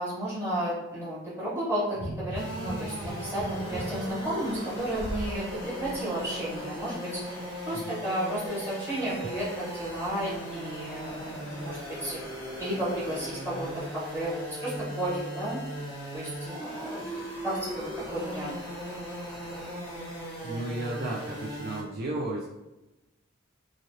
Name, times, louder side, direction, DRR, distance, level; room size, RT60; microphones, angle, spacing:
voice 1, 0.0-15.6 16.1-18.6, equal, 10° right, -11 dB, 1.4 m, -33 dB
Metal Radiator Tapped Deep, 1.9-5.4 5.8-6.0, right 1 dB, 85° right, 0.6 m, -38 dB
sound 1, 2.3-21.8, right 1 dB, 5° left, 1.1 m, -38 dB
voice 2, 20.4-22.5, right 2 dB, 45° right, -3 dB, 0.3 m, -33 dB
3.0 x 2.5 x 2.6 m, 1.0 s
head